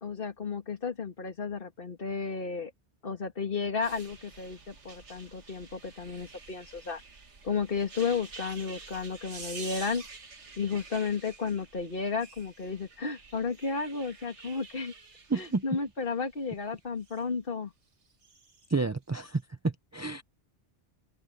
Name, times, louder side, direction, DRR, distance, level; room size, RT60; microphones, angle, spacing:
voice 1, 0.0-2.7 3.0-7.0 7.4-10.0 10.6-14.9 15.3-17.7, left 5 dB, 50° left, 2.2 m, -33 dB
sound 1, 3.8-17.2 18.1-18.7 19.2-19.3, right 4 dB, 85° right, 2.2 m, -48 dB
voice 2, 15.3-15.8 18.7-20.2, right 3 dB, 25° right, 0.4 m, -30 dB
omnidirectional pair, 1.2 m